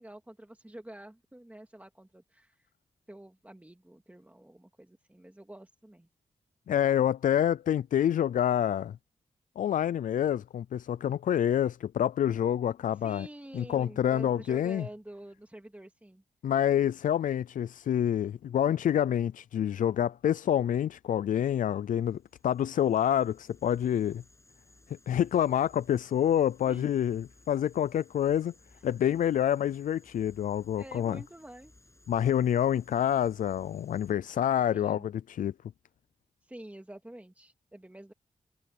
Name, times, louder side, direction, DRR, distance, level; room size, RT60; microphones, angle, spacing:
voice 1, 0.0-2.7 3.1-6.1 12.9-16.2 26.7-26.9 30.8-31.7 34.7-35.1 36.4-38.1, right 1 dB, 10° right, 2.6 m, -48 dB
voice 2, 6.7-9.0 9.6-13.3 13.5-14.9 16.4-24.2 25.1-28.5 28.8-31.2 32.1-35.5, left 10 dB, 85° left, 0.4 m, -27 dB
sound 1, 22.0-34.1, left 2 dB, 20° left, 7.8 m, -60 dB
cardioid pair, 70°, 13 cm